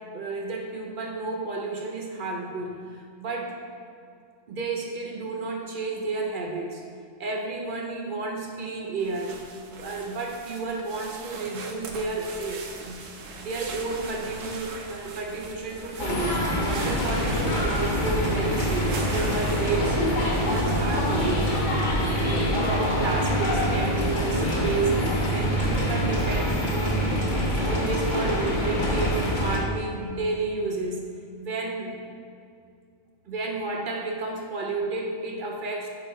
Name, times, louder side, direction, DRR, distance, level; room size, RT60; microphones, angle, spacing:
voice 1, 0.0-3.6 4.5-6.8 7.2-9.4 9.7-13.0 13.4-20.0 20.4-21.7 22.1-25.0 25.3-27.1 27.6-31.1 31.4-32.1 33.3-35.9, right 3 dB, 55° right, 1 dB, 0.6 m, -31 dB
sound 1, 9.0-21.6, right 3 dB, 75° right, 1.0 m, -40 dB
sound 2, 16.0-29.6, equal, 40° left, 1.0 m, -25 dB
5.1 x 4.3 x 4.4 m, 2.4 s
omnidirectional pair, 1.4 m